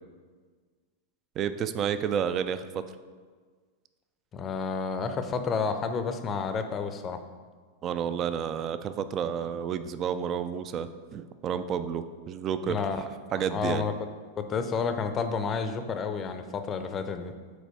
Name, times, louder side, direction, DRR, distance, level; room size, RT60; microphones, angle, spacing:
voice 1, 1.4-2.8 7.8-12.8 13.3-13.9, right 8 dB, 30° right, 12 dB, 0.4 m, -30 dB
voice 2, 4.3-7.2 12.7-13.9 14.4-17.3, left 5 dB, 25° left, 8 dB, 0.5 m, -30 dB
6.6 x 4.6 x 4.5 m, 1.5 s
figure-of-eight pair, 90°, 0 cm